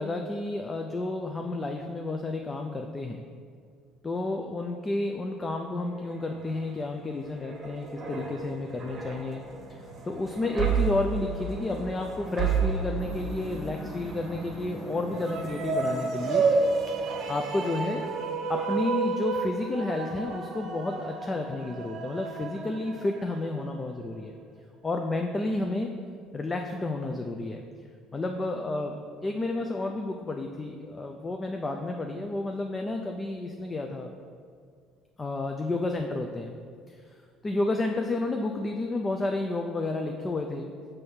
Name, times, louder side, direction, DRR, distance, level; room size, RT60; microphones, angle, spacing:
voice 1, 0.0-3.2 4.0-9.4 9.7-16.5 17.3-18.0 18.5-24.3 24.8-25.9 26.3-27.6 28.1-34.1 35.2-36.5 36.9-37.0 37.4-40.7, left 2 dB, 20° left, 3 dB, 0.4 m, -31 dB
sound 1, 5.9-18.2 18.5-18.8, right 6 dB, 35° right, 1.0 m, -34 dB
sound 2, 13.0-18.3, equal, 10° right, 1.2 m, -45 dB
sound 3, 15.1-23.6, right 3 dB, 55° right, 0.8 m, -30 dB
6.1 x 3.3 x 5.6 m, 2.1 s
cardioid pair, 120°, 0 cm